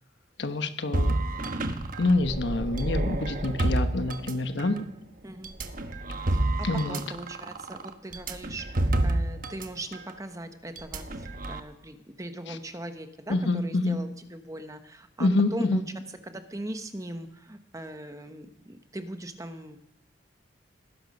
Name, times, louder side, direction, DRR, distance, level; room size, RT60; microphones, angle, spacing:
voice 1, 0.4-1.2 2.0-4.8 6.6-7.0 12.5-12.6 13.3-14.0 15.2-15.8, left 2 dB, 65° left, 9 dB, 1.1 m, -26 dB
sound 1, 0.9-4.8 5.4-9.7 9.9-10.1 10.8-11.6, right 1 dB, 45° right, 1.1 m, -29 dB
voice 2, 5.2-5.6 6.3-15.8 16.3-19.8, right 1 dB, 15° right, 8 dB, 0.9 m, -40 dB
18.5 x 12.0 x 5.4 m, 0.81 s
head